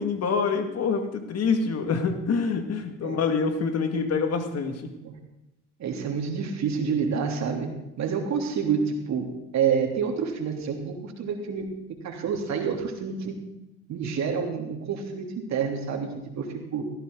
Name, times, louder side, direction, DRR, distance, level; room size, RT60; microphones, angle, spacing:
voice 1, 0.0-4.9, left 5 dB, 45° left, 6 dB, 2.3 m, -26 dB
voice 2, 5.8-9.2 9.5-11.7 12.0-13.4 13.9-16.9, right 6 dB, 55° right, 3 dB, 3.3 m, -28 dB
17.0 x 15.0 x 4.0 m, 0.91 s
supercardioid pair, 80°, 33 cm